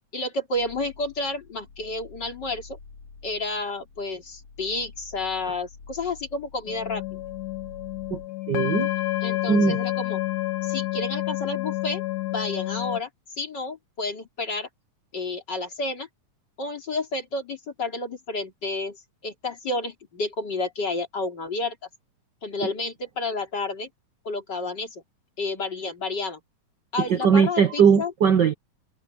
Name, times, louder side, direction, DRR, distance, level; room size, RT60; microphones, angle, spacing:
voice 1, 0.1-2.8 3.2-7.2 9.2-10.2 10.6-13.1 13.4-14.7 15.1-16.1 16.6-21.8 22.4-23.9 24.2-25.0 25.4-26.4 26.9-28.1, left 2 dB, 35° left, 3.3 m, -30 dB
sound 1, 0.5-8.3, left 4 dB, 65° left, 5.3 m, -47 dB
sound 2, 6.7-13.0, left 17 dB, 85° left, 2.6 m, -29 dB
voice 2, 8.5-8.9 9.5-9.8 27.1-28.5, right 6 dB, 65° right, 1.0 m, -19 dB
omnidirectional pair, 3.6 m